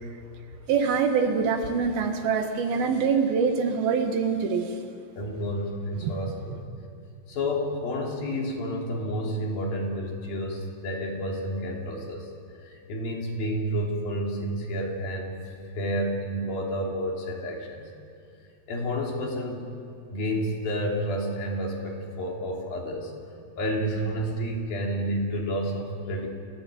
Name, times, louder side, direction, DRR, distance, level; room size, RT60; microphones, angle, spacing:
voice 1, 0.7-4.7 6.0-6.1, right 5 dB, 85° right, 5 dB, 3.7 m, -24 dB
voice 2, 5.2-6.7 7.3-12.3 12.6-15.4 15.7-17.9 18.7-19.7 20.1-23.1 23.6-26.3, equal, 80° left, -1 dB, 5.4 m, -30 dB
29.0 x 17.5 x 8.7 m, 2.4 s
omnidirectional pair, 4.2 m